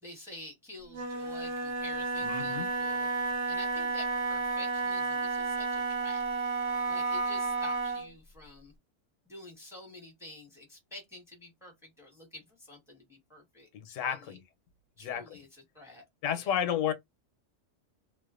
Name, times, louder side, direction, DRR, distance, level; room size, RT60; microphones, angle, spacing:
voice 1, 0.0-6.2 6.9-8.7 9.2-14.4 15.0-16.0 16.3-16.6, left 1 dB, ahead, 0.9 m, -49 dB
Wind instrument woodwind instrument, 0.9-8.1, right 3 dB, 70° right, 0.9 m, -32 dB
voice 2, 2.2-2.7 13.7-14.4 15.0-15.4 16.2-16.9, left 9 dB, 85° left, 0.9 m, -32 dB
2.4 x 2.3 x 2.3 m
omnidirectional pair, 1.3 m